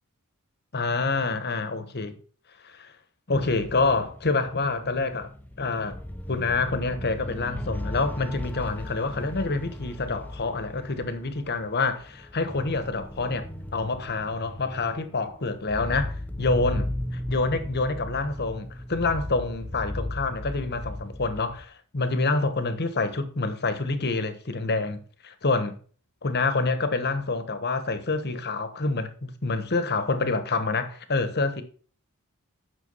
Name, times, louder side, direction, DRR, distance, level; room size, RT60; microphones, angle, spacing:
voice 1, 0.7-2.1 2.6-2.9 3.3-5.3 5.6-6.0 6.3-16.9 17.3-25.8 26.2-31.6, left 3 dB, 45° left, 1.3 m, -27 dB
sound 1, 3.3-21.6, left 1 dB, 10° left, 0.8 m, -36 dB
9.8 x 6.4 x 5.5 m
head